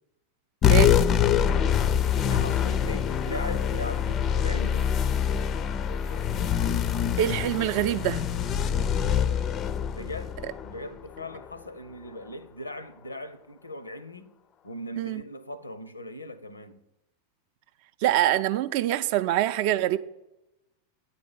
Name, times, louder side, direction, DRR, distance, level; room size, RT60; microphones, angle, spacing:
sound 1, 0.6-11.5, left 9 dB, 30° left, 0.4 m, -25 dB
voice 1, 2.1-4.9 9.9-10.4 10.6-14.3 14.6-16.8, left 1 dB, 80° left, 0.6 m, -39 dB
voice 2, 7.2-8.2 15.0-15.2 18.0-20.0, right 13 dB, 45° right, 0.4 m, -24 dB
9.7 x 4.2 x 7.1 m
figure-of-eight pair, 90°, 0 cm